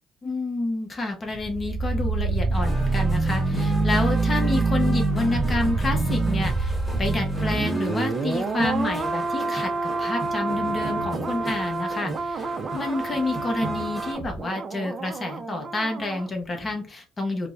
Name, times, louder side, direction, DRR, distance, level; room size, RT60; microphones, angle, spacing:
voice 1, 0.2-9.7 10.0-17.5, left 2 dB, 25° left, 2 dB, 0.7 m, -29 dB
sound 1, 1.3-16.3 16.5-16.7, right 3 dB, 35° right, 0.4 m, -26 dB
sound 2, 2.5-14.1, equal, 5° right, 1.3 m, -36 dB
4.3 x 2.0 x 2.5 m, 0.38 s
cardioid pair, 110°, 0 cm